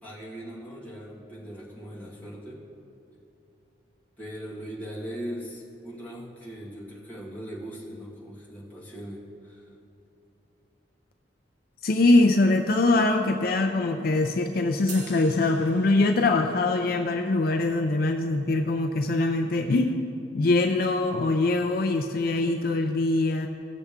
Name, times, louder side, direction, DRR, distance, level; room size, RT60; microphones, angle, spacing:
voice 1, 0.0-2.6 4.2-9.6, equal, 10° left, -7 dB, 1.9 m, -39 dB
voice 2, 11.8-20.1 20.3-23.5, left 2 dB, 55° left, 4 dB, 0.4 m, -23 dB
sound 1, 14.9-16.5, right 4 dB, 75° right, 1.1 m, -44 dB
17.0 x 6.8 x 3.6 m, 2.8 s
head